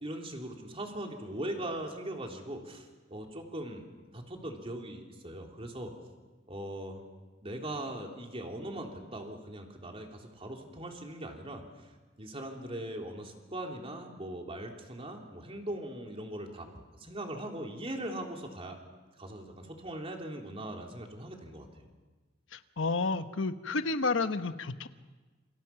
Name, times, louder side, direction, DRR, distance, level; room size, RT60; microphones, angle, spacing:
voice 1, 0.0-3.9 4.1-5.9 6.5-7.0 7.4-11.9 12.2-16.7 16.9-18.8 19.2-21.7, right 1 dB, 30° right, 2 dB, 3.3 m, -40 dB
voice 2, 22.5-24.9, left 3 dB, 90° left, 10 dB, 1.1 m, -31 dB
28.0 x 26.5 x 6.0 m, 1.3 s
head